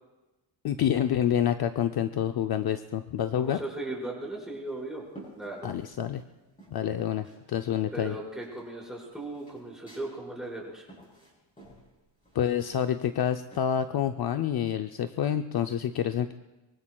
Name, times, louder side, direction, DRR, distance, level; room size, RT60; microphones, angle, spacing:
voice 1, 0.6-3.6 5.6-6.2 6.7-8.2 12.3-16.3, left 9 dB, 55° left, 7 dB, 0.6 m, -28 dB
voice 2, 3.3-5.0 5.3-5.7 7.9-10.9, right 2 dB, ahead, -5 dB, 5.0 m, -37 dB
sound 1, 4.4-6.3 6.6-7.4 7.7-13.8, right 1 dB, 15° left, 7.1 m, -53 dB
24.0 x 24.0 x 2.3 m, 1.1 s
wide cardioid pair, 160°, 47 cm